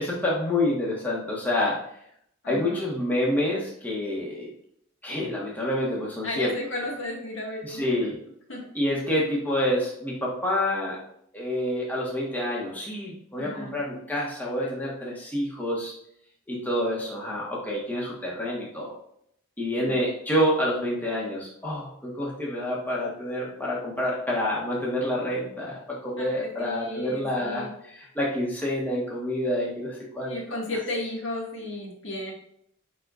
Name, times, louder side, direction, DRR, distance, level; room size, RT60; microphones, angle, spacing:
voice 1, 0.0-1.8 2.5-4.5 5.0-6.5 7.7-8.2 8.7-11.0 11.3-15.9 16.5-18.9 19.6-30.4, left 1 dB, 10° left, -4 dB, 1.3 m, -28 dB
voice 2, 2.4-2.9 6.2-8.0 8.5-8.6 13.4-13.8 19.7-20.0 26.2-27.7 30.2-32.3, left 1 dB, 70° left, -2 dB, 1.9 m, -34 dB
9.6 x 4.0 x 2.5 m, 0.69 s
head